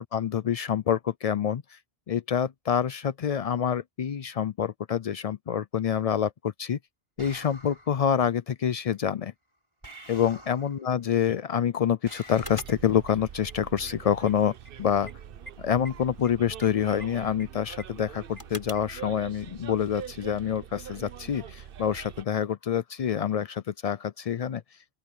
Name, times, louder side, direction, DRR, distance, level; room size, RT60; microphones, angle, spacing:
voice 1, 0.0-1.6 2.1-6.8 7.2-9.3 10.1-14.5 14.8-15.1 15.6-24.6, left 8 dB, 75° left, 0.3 m, -27 dB
sound 1, 7.2-8.0 9.8-10.9 12.0-12.6, right 1 dB, 25° right, 4.6 m, -46 dB
sound 2, 12.3-19.0, left 1 dB, 15° left, 6.0 m, -48 dB
Bus, 12.4-22.2, right 9 dB, 55° right, 0.8 m, -44 dB
open air
omnidirectional pair, 1.2 m